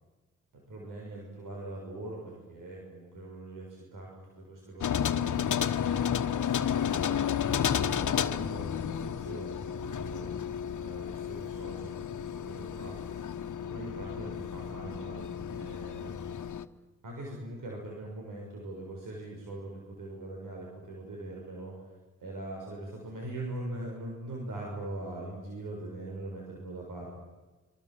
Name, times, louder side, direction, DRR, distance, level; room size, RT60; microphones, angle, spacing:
voice 1, 0.7-6.7 7.2-10.3 10.8-12.9 13.6-16.3 17.0-21.7 22.2-27.1, right 2 dB, 80° right, -1 dB, 6.5 m, -42 dB
sound 1, 4.8-16.6, left 8 dB, 70° left, 1.3 m, -32 dB
26.0 x 26.0 x 7.9 m, 1.2 s
cardioid pair, 75°, 32 cm